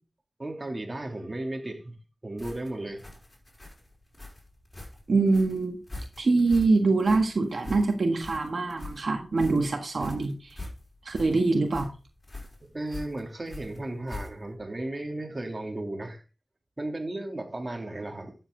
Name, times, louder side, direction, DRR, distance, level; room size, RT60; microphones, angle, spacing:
voice 1, 0.4-2.0 2.2-3.1 12.7-16.2 16.8-18.4, right 1 dB, 35° right, 3.0 m, -35 dB
sound 1, 2.4-14.6, left 2 dB, 30° left, 5.6 m, -43 dB
voice 2, 5.1-5.8 6.2-10.6 11.0-11.9, right 3 dB, 75° right, 1.6 m, -24 dB
12.5 x 7.7 x 3.9 m
wide cardioid pair, 60°, 0 cm